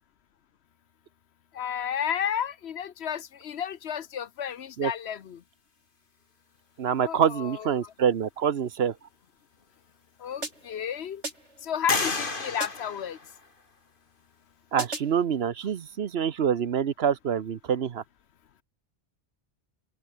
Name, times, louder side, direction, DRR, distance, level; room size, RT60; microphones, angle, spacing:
voice 1, 1.5-5.4 7.0-7.9 10.2-11.2 11.6-13.2, left 8 dB, 70° left, 1.1 m, -32 dB
voice 2, 6.8-8.9 14.7-18.0, right 8 dB, 65° right, 1.1 m, -26 dB
sound 1, 9.6-9.7 10.3-11.0 11.9-13.8, left 3 dB, 50° left, 2.6 m, -33 dB
sound 2, 10.4-10.9 11.2-11.7 12.6-13.0 14.8-15.3, right 2 dB, 85° right, 4.7 m, -37 dB
open air
omnidirectional pair, 1.2 m